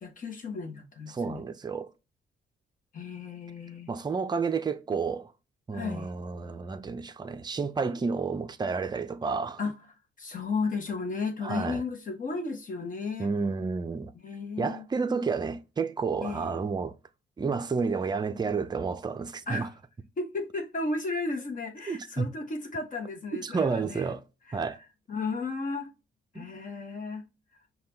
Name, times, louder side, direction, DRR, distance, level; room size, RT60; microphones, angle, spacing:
voice 1, 0.0-1.4 2.9-3.9 5.7-6.1 9.6-9.7 10.2-13.3 14.1-14.8 16.2-16.7 19.5-19.7 20.2-24.1 24.5-24.7 25.1-25.9 26.3-27.2, left 3 dB, 45° left, 1.0 m, -34 dB
voice 2, 1.1-1.9 3.9-5.3 5.7-9.6 11.4-11.8 13.2-14.1 14.6-16.9 17.4-19.7 21.9-22.3 23.3-24.2 24.5-24.8 26.4-26.5, right 5 dB, 20° right, 0.5 m, -30 dB
5.6 x 2.3 x 3.3 m
cardioid pair, 100°, 19 cm